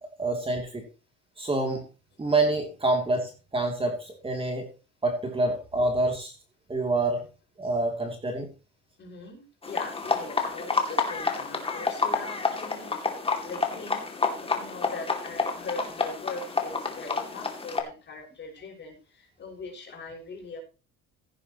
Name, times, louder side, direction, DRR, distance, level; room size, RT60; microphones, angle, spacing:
voice 1, 0.2-0.8 1.4-1.8 2.2-4.7 5.0-6.3 6.7-7.2 7.6-8.5, right 2 dB, 20° right, 3 dB, 2.9 m, -27 dB
voice 2, 9.0-20.6, left 3 dB, 35° left, 0 dB, 5.9 m, -41 dB
sound 1, 9.6-17.8, left 4 dB, 20° left, 2.5 m, -29 dB
16.0 x 10.0 x 3.0 m, 0.33 s
cardioid pair, 125°, 30 cm